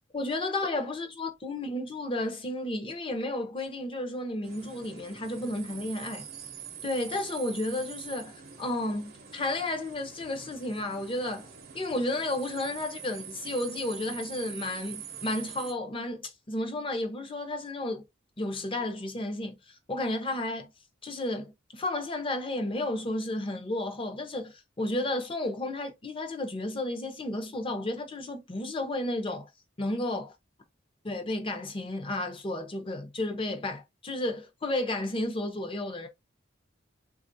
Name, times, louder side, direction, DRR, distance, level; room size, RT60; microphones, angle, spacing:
voice 1, 0.1-6.3 6.8-11.5 11.7-18.0 18.4-19.6 19.9-20.7 21.0-29.5 29.8-30.3 31.0-36.1, left 1 dB, 30° left, 0.6 m, -32 dB
sound 1, 4.4-15.7, right 8 dB, 50° right, 0.6 m, -44 dB
3.5 x 2.4 x 2.6 m
head